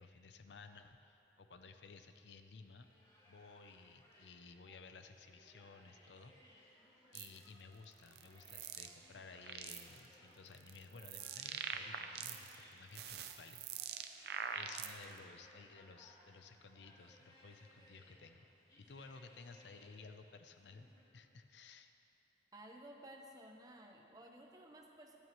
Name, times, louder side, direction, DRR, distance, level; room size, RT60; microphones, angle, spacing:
voice 1, 0.0-2.9 3.3-6.7 7.1-13.9 14.5-18.5 18.8-20.9 21.1-21.9, left 4 dB, 80° left, 8 dB, 0.6 m, -56 dB
sound 1, 2.8-21.0, equal, 20° left, 2.4 m, -65 dB
sound 2, 7.1-7.4 8.1-8.9 9.3-10.0 10.5-12.6 12.9-15.2, right 7 dB, 65° right, 0.6 m, -44 dB
voice 2, 22.5-25.2, right 1 dB, 20° right, 1 dB, 1.0 m, -55 dB
17.5 x 12.5 x 3.1 m, 2.8 s
head